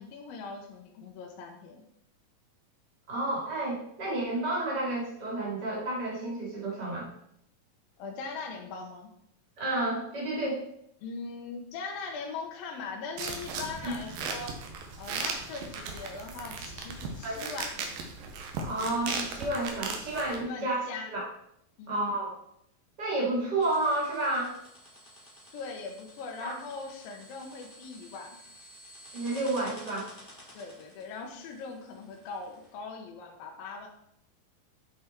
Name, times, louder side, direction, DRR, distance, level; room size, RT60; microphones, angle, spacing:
voice 1, 0.0-1.8 8.0-9.1 11.0-14.6 15.0-18.0 20.4-21.1 21.8-22.1 25.5-28.4 30.5-33.9, left 4 dB, 80° left, 2 dB, 2.8 m, -40 dB
voice 2, 3.1-7.1 9.6-10.6 13.8-13.9 17.2-17.4 18.6-21.2 21.9-22.3 23.0-24.6 26.4-26.5 29.1-30.1, right 2 dB, 30° right, -4 dB, 3.1 m, -31 dB
sound 1, 13.2-20.4, right 4 dB, 80° right, 2.8 m, -37 dB
sound 2, 23.6-32.7, equal, 5° left, 2.8 m, -52 dB
8.3 x 5.8 x 4.5 m, 0.74 s
omnidirectional pair, 4.0 m